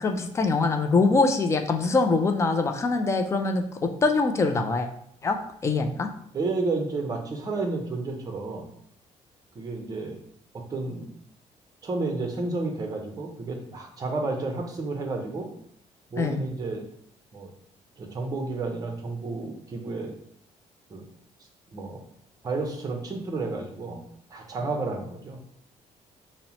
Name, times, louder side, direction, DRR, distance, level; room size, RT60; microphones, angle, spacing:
voice 1, 0.0-4.9 5.2-5.4 5.6-6.1 16.2-16.5, left 3 dB, 20° left, 6 dB, 0.4 m, -23 dB
voice 2, 6.3-8.7 9.5-10.2 10.5-11.1 11.8-15.5 16.1-16.9 17.3-17.5 18.0-20.1 20.9-21.0 21.7-22.0 22.4-24.0 24.3-25.4, right 3 dB, 30° right, 3 dB, 0.7 m, -31 dB
5.3 x 2.0 x 2.9 m, 0.68 s
cardioid pair, 140°, 13 cm